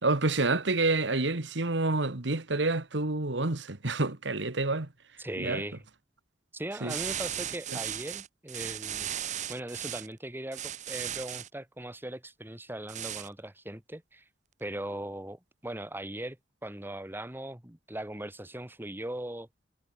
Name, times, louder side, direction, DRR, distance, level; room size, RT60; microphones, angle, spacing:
voice 1, 0.0-4.9 5.4-5.6 6.8-6.9, right 2 dB, 70° right, 1.7 m, -28 dB
voice 2, 5.2-5.8 6.5-9.1 9.5-14.2 14.6-16.4 16.6-19.5, right 1 dB, 10° right, 1.6 m, -39 dB
sound 1, 6.9-10.1 10.5-11.5 12.9-13.3, right 10 dB, 40° right, 0.7 m, -36 dB
head